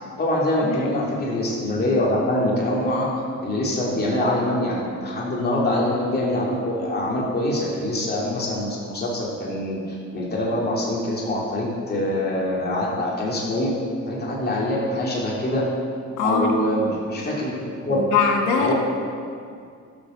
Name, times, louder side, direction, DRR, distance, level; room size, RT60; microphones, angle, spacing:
voice 1, 0.2-3.1 3.4-13.7 14.1-15.7 16.2-18.0 18.6-18.7, left 1 dB, 30° left, -5 dB, 2.6 m, -24 dB
voice 2, 16.2-16.6 17.9-18.7, left 4 dB, 85° left, 2 dB, 1.6 m, -22 dB
12.0 x 6.3 x 6.4 m, 2.3 s
cardioid pair, 90°, 30 cm